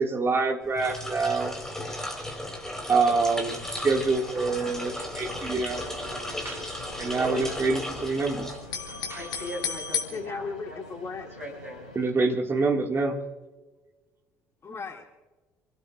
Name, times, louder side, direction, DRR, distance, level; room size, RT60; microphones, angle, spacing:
voice 1, 0.0-1.5 2.9-5.8 6.4-6.6 7.0-8.6 9.1-9.5 11.9-13.2, right 4 dB, 30° right, 2 dB, 2.3 m, -26 dB
sound 1, 0.7-9.1, left 1 dB, 5° left, 4.8 m, -35 dB
sound 2, 3.7-12.1, left 2 dB, 75° left, 4.7 m, -46 dB
sound 3, 3.7-4.1 4.3-4.4 4.6-6.3 6.6-8.2 8.5-10.0, left 7 dB, 55° left, 2.6 m, -34 dB
voice 2, 7.3-7.7 9.1-10.4 10.7-10.8 11.4-11.9, left 1 dB, 90° right, -2 dB, 6.7 m, -39 dB
voice 3, 10.1-11.3 14.6-15.0, left 4 dB, 35° left, 3 dB, 1.8 m, -36 dB
28.0 x 18.0 x 2.6 m, 1.2 s
figure-of-eight pair, 55°, 8 cm